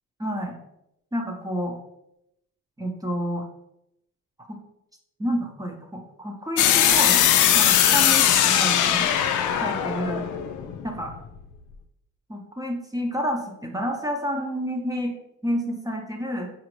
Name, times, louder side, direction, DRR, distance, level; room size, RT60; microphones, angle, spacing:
voice 1, 0.2-0.6 1.1-1.8 2.8-3.4 4.5-4.6 5.2-9.1 9.6-10.3 10.8-11.1 12.3-15.1 15.4-16.5, equal, 10° right, 2 dB, 0.6 m, -29 dB
sound 1, 6.6-11.4, left 10 dB, 80° left, 0.4 m, -20 dB
5.0 x 2.4 x 3.1 m, 0.82 s
cardioid pair, 90°, 30 cm